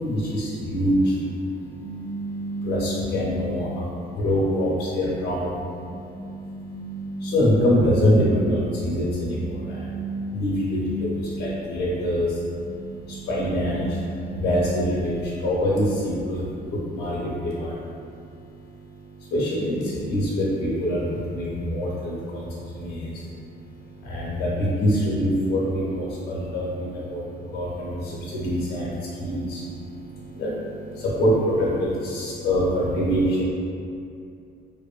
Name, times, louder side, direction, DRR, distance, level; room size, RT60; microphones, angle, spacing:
voice 1, 0.0-33.4, equal, 85° left, -6 dB, 0.6 m, -25 dB
sound 1, 1.8-4.0 4.6-7.7 8.9-11.8 12.3-15.2, equal, 80° right, 0.9 m, -35 dB
2.5 x 2.5 x 2.3 m, 2.5 s
cardioid pair, 140°, 17 cm